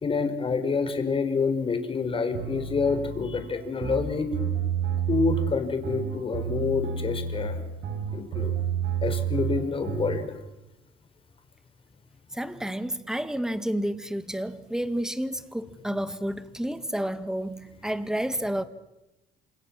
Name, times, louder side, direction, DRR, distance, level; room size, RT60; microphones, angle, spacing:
voice 1, 0.0-4.3 5.1-7.5 8.1-8.5 9.0-10.3, left 4 dB, 30° left, 4.8 m, -27 dB
sound 1, 2.3-10.2, right 8 dB, 80° right, 6.8 m, -30 dB
voice 2, 12.3-18.6, right 1 dB, 5° right, 2.0 m, -30 dB
28.0 x 27.5 x 7.6 m
cardioid pair, 110°, 17 cm